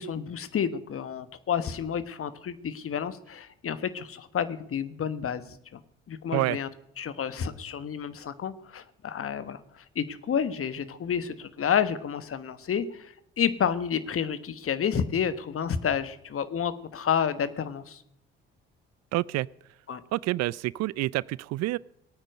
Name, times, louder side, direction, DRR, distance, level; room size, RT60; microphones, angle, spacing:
voice 1, 0.0-5.4 5.7-5.8 6.1-6.7 7.0-18.0 19.9-20.0, left 8 dB, 45° left, 1.4 m, -30 dB
voice 2, 19.1-19.5 20.1-21.8, right 17 dB, 55° right, 0.5 m, -28 dB
18.5 x 8.9 x 6.4 m
hypercardioid pair, 45°, 31 cm